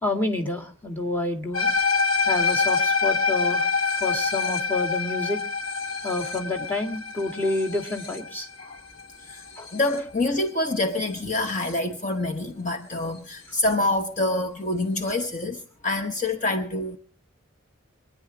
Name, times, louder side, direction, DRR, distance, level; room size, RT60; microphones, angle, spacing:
voice 1, 0.0-1.7 2.3-3.6 4.0-5.4 6.0-8.5 9.6-9.7, left 2 dB, 10° left, 1.8 m, -28 dB
sound 1, 1.5-10.0, left 4 dB, 85° left, 2.1 m, -26 dB
voice 2, 9.7-17.0, left 2 dB, 35° left, 1.0 m, -26 dB
24.0 x 10.0 x 4.8 m
head